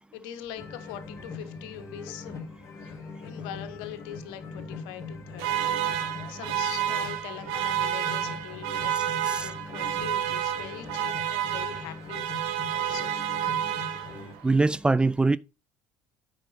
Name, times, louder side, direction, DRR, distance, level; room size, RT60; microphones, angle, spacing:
voice 1, 0.1-2.4 2.8-2.9 3.2-5.8 6.3-12.2 12.7-13.2, left 11 dB, 75° left, 1.1 m, -42 dB
sound 1, 0.6-14.3, left 3 dB, 40° left, 2.8 m, -42 dB
sound 2, 5.4-14.4, right 11 dB, 75° right, 1.2 m, -30 dB
voice 2, 8.9-9.5 14.4-15.4, right 3 dB, 10° right, 0.4 m, -23 dB
8.8 x 5.0 x 4.1 m
supercardioid pair, 80°, 8 cm